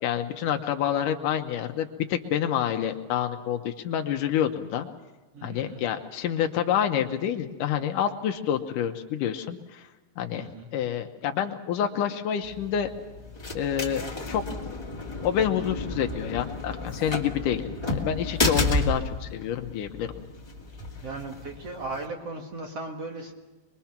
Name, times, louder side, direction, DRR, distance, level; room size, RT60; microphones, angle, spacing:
voice 1, 0.0-4.9 5.4-9.9 10.2-12.9 13.5-14.4 15.2-20.2, left 9 dB, 80° left, 5 dB, 1.9 m, -28 dB
voice 2, 5.3-5.8 10.4-10.7 21.0-23.3, right 3 dB, 55° right, 2 dB, 1.8 m, -37 dB
sound 1, 12.4-22.0, left 2 dB, 45° left, 0.3 m, -32 dB
24.0 x 22.5 x 5.9 m, 1.2 s
omnidirectional pair, 4.9 m